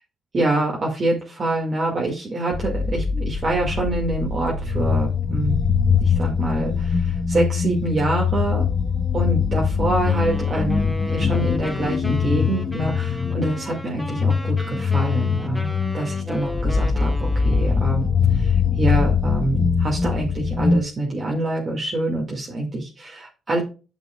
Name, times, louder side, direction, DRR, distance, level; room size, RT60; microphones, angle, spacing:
voice 1, 0.3-5.6 5.9-8.6 9.1-23.6, right 2 dB, 40° right, -2 dB, 2.0 m, -26 dB
sound 1, 2.5-20.8, left 6 dB, 35° left, 1.0 m, -22 dB
sound 2, 10.0-18.0, left 1 dB, 5° left, 1.1 m, -35 dB
9.0 x 6.2 x 2.3 m, 0.33 s
cardioid pair, 90°, 0 cm